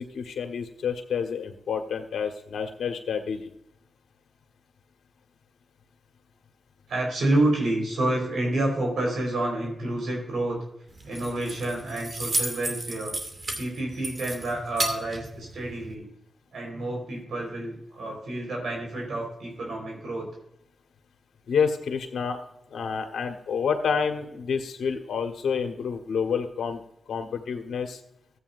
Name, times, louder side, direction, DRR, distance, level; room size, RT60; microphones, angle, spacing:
voice 1, 0.0-3.5 21.5-22.4 22.7-26.8 27.1-28.0, left 6 dB, 80° left, 4 dB, 1.4 m, -29 dB
voice 2, 6.9-10.6 11.0-13.1 13.6-16.1 16.5-20.3, right 1 dB, 80° right, 0 dB, 4.4 m, -29 dB
Keys jangling, 10.9-15.9, right 1 dB, 45° right, 2.3 m, -33 dB
14.5 x 8.3 x 2.6 m, 0.79 s
cardioid pair, 50°, 0 cm